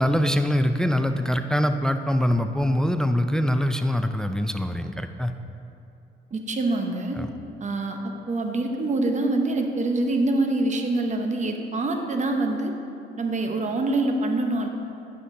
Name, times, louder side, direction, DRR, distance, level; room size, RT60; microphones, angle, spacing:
voice 1, 0.0-5.3 7.2-7.3, equal, 5° left, 8 dB, 0.3 m, -23 dB
voice 2, 6.3-7.2 7.6-12.7 13.2-14.7, right 2 dB, 35° right, 4 dB, 0.9 m, -25 dB
9.4 x 5.9 x 3.8 m, 2.7 s
cardioid pair, 90°, 20 cm